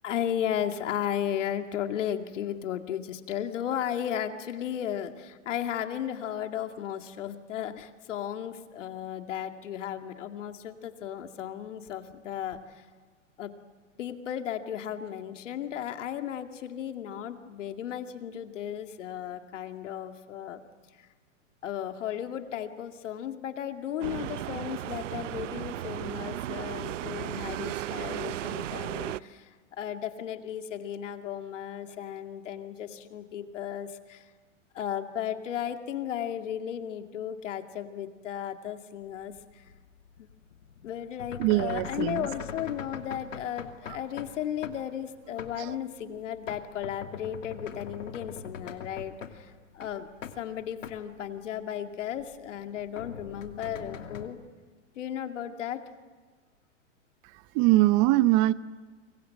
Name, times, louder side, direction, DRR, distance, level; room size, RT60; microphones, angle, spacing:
voice 1, 0.0-12.9 13.4-13.5 14.0-20.6 21.0-21.1 21.6-29.5 29.8-34.3 34.7-39.7 40.2-40.3 40.8-50.1 50.4-54.4 55.0-55.8, left 10 dB, 70° left, 2.4 m, -35 dB
sound 1, 24.0-29.2, right 13 dB, 75° right, 0.8 m, -35 dB
sound 2, 39.4-44.4 44.6-44.8 45.4-45.8 46.1-49.5 49.8-50.4 50.7-51.1 51.4-51.5 52.1-54.3, left 7 dB, 90° left, 2.7 m, -42 dB
voice 2, 41.4-42.2 45.6-45.7 57.5-58.5, right 17 dB, 35° right, 0.8 m, -22 dB
29.0 x 24.0 x 7.8 m
hypercardioid pair, 125°, 38 cm